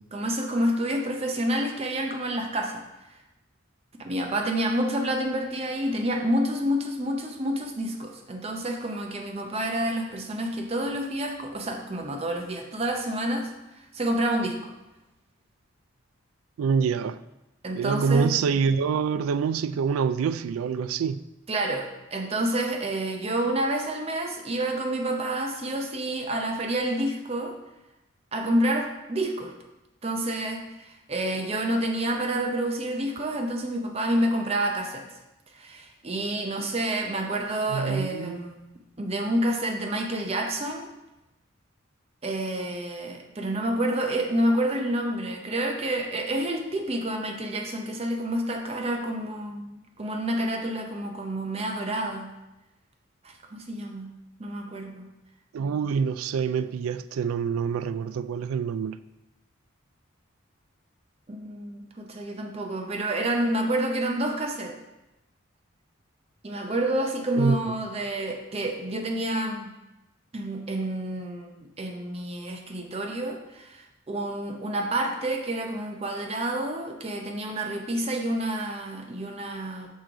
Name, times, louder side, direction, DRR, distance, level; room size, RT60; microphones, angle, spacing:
voice 1, 0.1-2.8 4.0-14.7 17.6-18.3 21.5-27.6 28.3-29.5 30.0-35.1 35.5-38.7 39.0-40.9 42.2-52.3 53.2-54.1 54.4-55.1 61.3-64.8 66.4-69.7 70.3-79.9, right 1 dB, 30° right, 0.6 m, -29 dB
voice 2, 16.6-17.2 17.7-21.2 37.7-38.5 55.5-59.0 67.4-67.6, right 6 dB, 85° right, 0.3 m, -26 dB
6.3 x 3.8 x 4.6 m
head